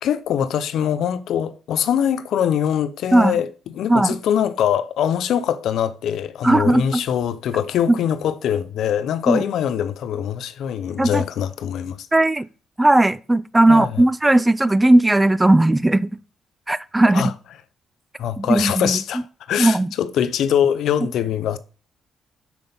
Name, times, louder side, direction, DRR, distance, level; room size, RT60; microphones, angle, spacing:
voice 1, 0.0-12.1 13.7-14.0 17.1-17.3 18.2-19.2 19.5-21.6, left 9 dB, 75° left, 0.7 m, -23 dB
voice 2, 6.4-7.0 7.9-8.0 9.3-9.4 11.0-11.2 12.1-12.5 12.8-16.1 16.7-17.3 18.4-19.0 19.6-19.9, right 1 dB, 15° right, 0.5 m, -17 dB
6.1 x 5.4 x 6.9 m
cardioid pair, 90°, 0 cm